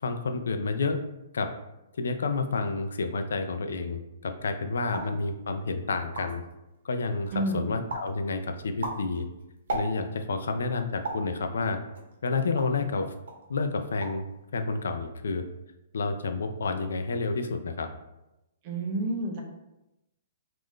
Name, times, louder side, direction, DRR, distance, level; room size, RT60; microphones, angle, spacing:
voice 1, 0.0-1.0 1.3-1.5 2.0-6.4 6.8-9.3 9.7-11.8 12.2-13.1 13.5-14.2 14.5-15.5 15.9-17.9, left 4 dB, 85° left, 7 dB, 0.4 m, -29 dB
sound 1, 4.9-5.2 5.7-5.8 6.0-6.5 7.0-7.5 7.9-8.2 8.6-10.3 11.0-11.3 11.9-12.9 13.3-13.5 13.8-14.3 14.5-15.0, right 3 dB, 70° right, 0.8 m, -36 dB
voice 2, 7.3-7.8 18.6-19.4, right 1 dB, 35° right, 2 dB, 0.6 m, -30 dB
3.7 x 2.5 x 3.2 m, 0.92 s
hypercardioid pair, 160°, 0 cm